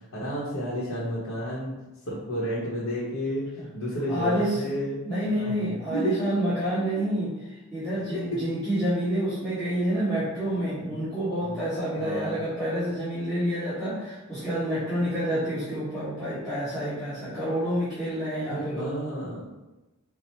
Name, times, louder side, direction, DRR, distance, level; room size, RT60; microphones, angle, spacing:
voice 1, 0.1-1.7 2.1-3.4 3.7-5.0 5.3-5.5 5.9-6.2 8.3-8.4 11.4-11.6 12.0-12.4 18.5-19.5, equal, 65° left, -6 dB, 0.8 m, -31 dB
voice 2, 4.1-4.6 5.0-18.9, right 1 dB, ahead, -16 dB, 1.4 m, -28 dB
4.1 x 2.1 x 4.3 m, 1.0 s
head